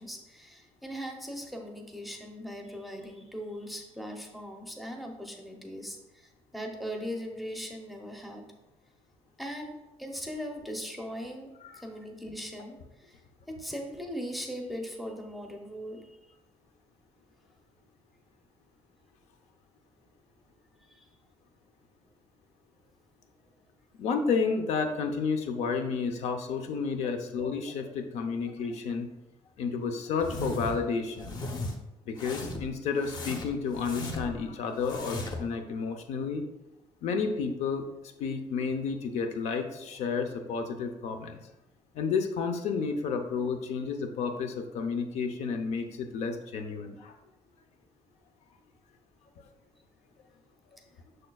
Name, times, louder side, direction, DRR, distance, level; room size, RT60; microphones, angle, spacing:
voice 1, 0.0-8.5 9.4-13.2 13.5-16.1 20.9-21.1 25.5-25.6 27.0-27.2 31.2-31.3, equal, ahead, 2 dB, 0.6 m, -39 dB
voice 2, 24.0-29.1 29.6-31.3 32.1-36.4 37.0-37.8 38.2-41.4 41.9-47.2 49.4-49.5, left 5 dB, 70° left, 6 dB, 0.7 m, -31 dB
sound 1, 30.2-30.8 31.2-31.7 32.2-32.7 33.0-34.4 34.8-35.5, left 2 dB, 35° left, 0.8 m, -36 dB
6.6 x 6.4 x 2.3 m, 0.96 s
cardioid pair, 170°, 12 cm